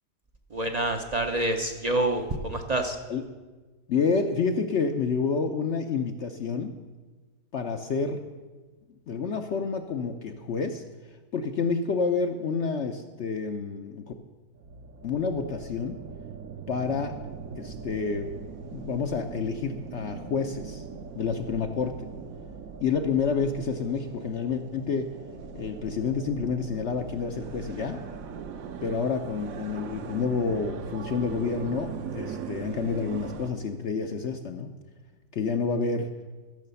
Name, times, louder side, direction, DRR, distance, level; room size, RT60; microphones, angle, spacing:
voice 1, 0.5-3.0, right 1 dB, 45° right, 5 dB, 0.5 m, -27 dB
voice 2, 3.9-6.8 7.5-8.2 9.1-10.8 11.3-14.1 15.0-16.0 16.7-17.1 17.6-18.4 18.7-20.8 21.1-22.1 22.8-25.1 25.5-28.0 28.8-34.7 35.3-36.1, left 5 dB, 60° left, 6 dB, 0.8 m, -29 dB
sound 1, 14.5-33.5, right 6 dB, 65° right, 1.1 m, -40 dB
14.0 x 6.6 x 6.8 m, 1.3 s
omnidirectional pair, 1.7 m